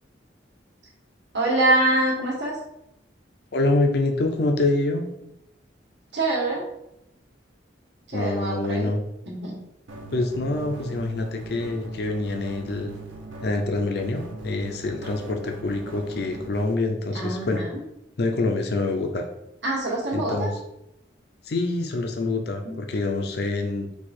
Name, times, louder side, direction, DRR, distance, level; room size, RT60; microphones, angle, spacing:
voice 1, 1.3-2.5 6.1-6.6 8.1-8.9 9.3-9.6 17.1-17.8 19.6-20.5 22.6-22.7, right 2 dB, 65° right, -4 dB, 1.3 m, -24 dB
voice 2, 3.5-5.0 8.1-9.0 10.1-12.9 13.4-17.6 18.2-19.3 20.1-20.6 21.4-23.9, left 2 dB, 55° left, 4 dB, 0.5 m, -26 dB
sound 1, 9.9-16.7, right 2 dB, 85° right, 0.9 m, -40 dB
4.6 x 2.4 x 4.2 m, 0.82 s
head